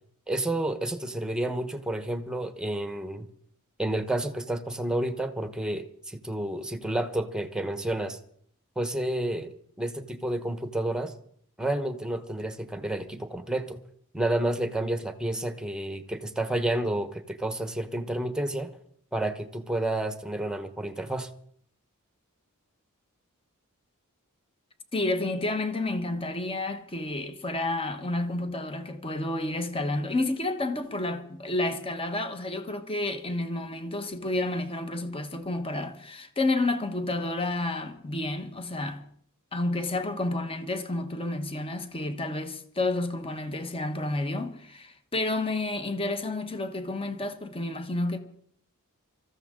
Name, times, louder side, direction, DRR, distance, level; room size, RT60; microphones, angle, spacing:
voice 1, 0.3-3.3 3.8-8.2 8.8-11.1 11.6-13.8 14.1-18.7 19.1-21.3, right 1 dB, 5° right, 1.1 m, -30 dB
voice 2, 24.9-39.0 39.5-48.2, left 2 dB, 25° left, 1.3 m, -30 dB
24.5 x 14.5 x 3.8 m
head